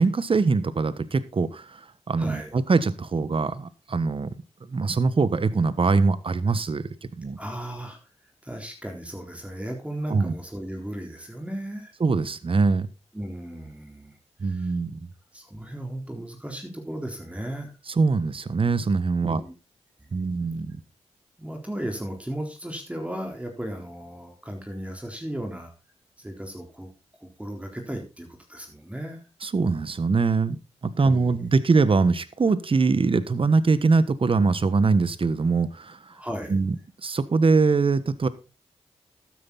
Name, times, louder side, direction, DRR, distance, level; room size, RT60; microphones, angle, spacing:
voice 1, 0.0-1.8 2.1-4.3 4.7-6.8 7.2-7.4 10.1-10.3 12.0-12.9 14.4-15.0 18.0-19.4 20.1-20.8 29.4-30.6 30.8-36.1 36.5-36.7 37.0-38.3, right 4 dB, 50° right, 15 dB, 1.3 m, -22 dB
voice 2, 2.2-2.6 7.4-8.0 8.4-11.9 13.1-14.7 15.3-17.7 19.2-19.5 20.0-20.1 21.4-25.7 26.2-26.9 27.2-29.2 31.0-31.4 36.1-36.6, right 1 dB, 10° right, 3 dB, 3.8 m, -36 dB
12.5 x 9.6 x 4.0 m, 0.29 s
cardioid pair, 55°, 12 cm